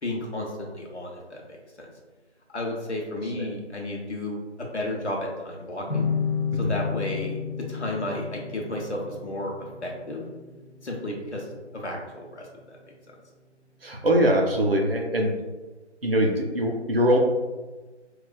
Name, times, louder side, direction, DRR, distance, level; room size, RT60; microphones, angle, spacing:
voice 1, 0.0-1.9 2.5-6.1 6.5-7.4 7.7-10.2 10.8-12.8, left 1 dB, 70° left, 0 dB, 0.9 m, -33 dB
sound 1, 5.9-13.1, left 6 dB, 40° left, 0.5 m, -33 dB
voice 2, 13.8-15.4 16.0-17.2, equal, 55° right, 1 dB, 0.6 m, -22 dB
4.7 x 2.4 x 2.2 m, 1.2 s
figure-of-eight pair, 170°, 35 cm